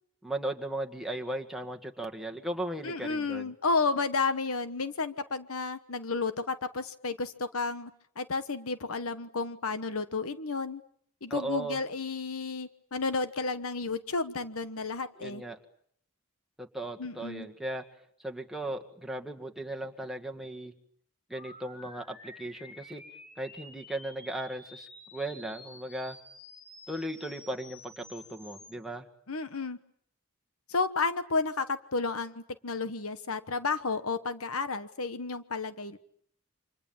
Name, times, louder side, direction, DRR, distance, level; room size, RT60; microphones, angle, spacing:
voice 1, 0.2-3.5 11.3-11.8 15.2-15.6 16.6-17.8 18.2-20.7 21.3-23.0 23.4-26.2 26.9-29.1, right 1 dB, ahead, 1 dB, 2.0 m, -37 dB
voice 2, 2.8-7.9 8.2-10.8 11.2-15.4 17.0-17.5 29.3-29.8 30.7-36.0, left 4 dB, 80° left, 11 dB, 1.2 m, -32 dB
sound 1, 21.3-28.7, left 2 dB, 35° left, 4.0 m, -51 dB
29.5 x 26.0 x 7.3 m, 0.65 s
head